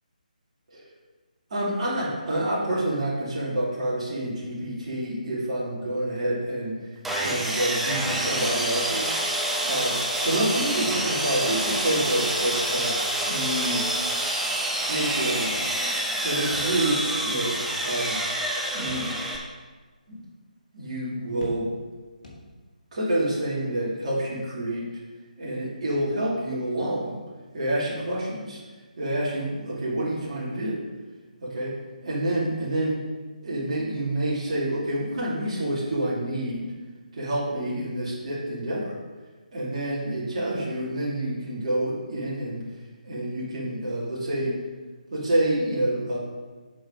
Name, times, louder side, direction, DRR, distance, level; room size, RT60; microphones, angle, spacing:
voice 1, 1.5-6.8 7.2-9.1 9.6-13.0 13.2-13.9 14.8-15.6 16.2-17.6 17.8-18.2 18.7-19.2 20.1-20.2 20.7-21.7 22.9-24.9 25.4-27.2 27.5-28.6 29.0-30.8 31.4-31.8 32.0-33.0 33.4-36.7 37.1-38.9 39.5-42.6 43.0-44.5 45.1-46.2, right 1 dB, 45° right, -6 dB, 2.4 m, -28 dB
Sawing, 7.0-19.4, right 1 dB, 5° right, 0.6 m, -27 dB
sound 1, 16.5-17.4 17.7-17.8 18.9-19.5 20.0-20.1 21.4-22.0 22.2-22.9, left 2 dB, 65° left, 1.8 m, -43 dB
7.4 x 4.7 x 4.9 m, 1.3 s
figure-of-eight pair, 150°, 5 cm